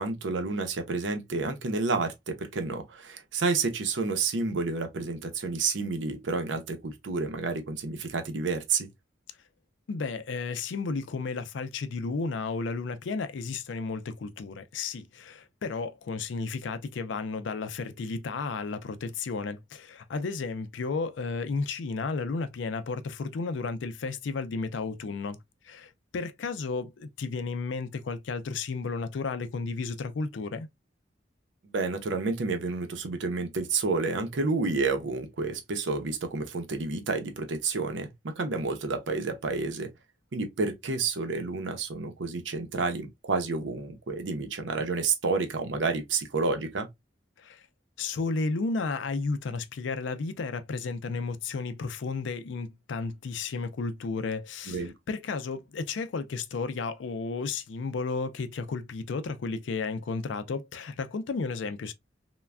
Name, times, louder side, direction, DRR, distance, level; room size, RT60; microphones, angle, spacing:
voice 1, 0.0-8.9 31.7-39.9 40.3-46.9 54.7-54.9, right 4 dB, 90° right, 0.6 m, -30 dB
voice 2, 9.9-25.4 25.6-30.7 47.4-47.6 48.0-61.9, left 4 dB, 85° left, 0.4 m, -33 dB
3.2 x 2.2 x 2.3 m
head